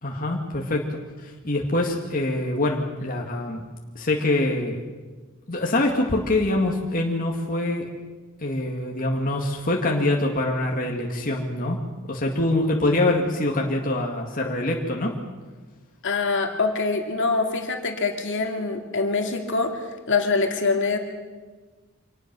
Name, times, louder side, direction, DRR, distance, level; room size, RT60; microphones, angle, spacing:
voice 1, 0.0-3.6 4.0-4.8 5.5-7.9 8.4-11.8 12.1-15.1, left 2 dB, 40° left, 0 dB, 2.1 m, -24 dB
voice 2, 16.0-21.0, left 4 dB, 60° left, 3 dB, 2.4 m, -24 dB
25.5 x 19.0 x 6.2 m, 1.3 s
head